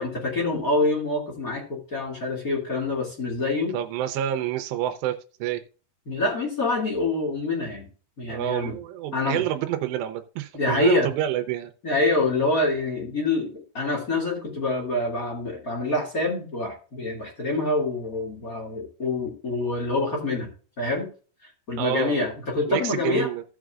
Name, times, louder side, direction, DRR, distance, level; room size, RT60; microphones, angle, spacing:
voice 1, 0.0-3.7 6.1-7.9 8.2-8.7 9.1-9.4 10.5-11.1 11.8-20.5 20.8-21.1 21.4-23.3, left 2 dB, 30° left, -2 dB, 2.0 m, -26 dB
voice 2, 3.7-5.6 8.3-11.7 21.8-22.2 22.7-23.4, right 11 dB, 85° right, 8 dB, 3.0 m, -28 dB
16.5 x 6.1 x 2.4 m, 0.38 s
omnidirectional pair, 4.8 m